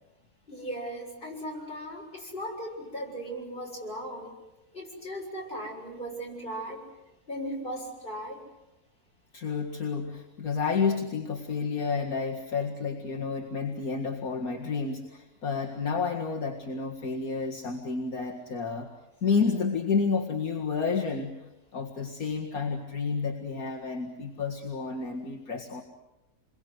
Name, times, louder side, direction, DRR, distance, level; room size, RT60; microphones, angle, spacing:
voice 1, 0.5-4.3 4.7-6.8 7.3-8.4, equal, 35° left, -1 dB, 7.3 m, -37 dB
voice 2, 9.3-18.9 19.2-21.4 21.7-25.8, left 5 dB, 70° left, 0 dB, 2.3 m, -30 dB
27.5 x 22.5 x 8.0 m, 0.94 s
omnidirectional pair, 1.6 m